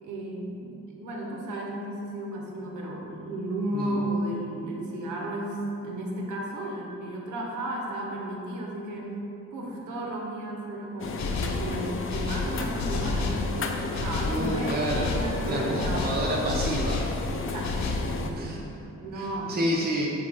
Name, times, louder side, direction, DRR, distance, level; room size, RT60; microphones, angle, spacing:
voice 1, 0.0-9.1 9.5-14.8 15.0-16.3 17.3-18.6 19.0-19.7, right 1 dB, 75° right, -1 dB, 1.2 m, -34 dB
sound 1, 11.0-18.3, left 4 dB, 45° left, 0.6 m, -33 dB
sound 2, 11.2-11.7 12.1-13.5 13.9-14.4 14.9-15.3 15.8-17.2 17.6-18.1, left 3 dB, 65° left, 1.0 m, -30 dB
voice 2, 14.3-15.1 15.5-17.0 18.4-18.6 19.1-20.1, right 1 dB, 30° right, -3 dB, 0.9 m, -29 dB
8.1 x 2.7 x 5.3 m, 2.9 s
cardioid pair, 90°, 30 cm